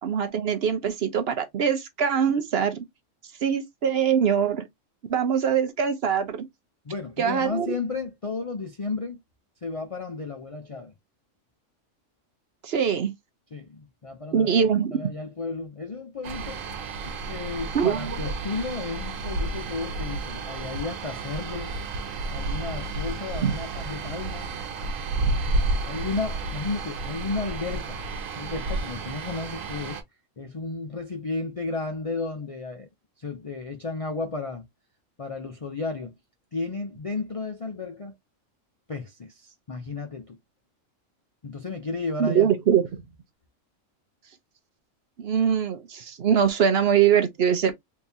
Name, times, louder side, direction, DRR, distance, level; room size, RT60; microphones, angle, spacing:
voice 1, 0.0-2.8 3.4-4.7 5.1-6.5 7.2-7.7 12.6-13.1 14.3-15.0 17.7-18.2 23.4-23.5 42.2-43.0 45.2-47.7, right 8 dB, 60° right, 0.8 m, -23 dB
voice 2, 6.8-9.2 9.6-10.9 13.5-16.6 17.1-21.7 22.3-24.5 25.9-28.0 28.4-30.0 30.4-32.9 33.2-34.6 35.2-36.1 36.5-38.1 38.9-40.4 41.4-42.5, left 3 dB, 45° left, 0.4 m, -33 dB
sound 1, 16.2-30.0, right 2 dB, 80° right, 1.2 m, -31 dB
3.6 x 2.9 x 2.7 m
omnidirectional pair, 1.3 m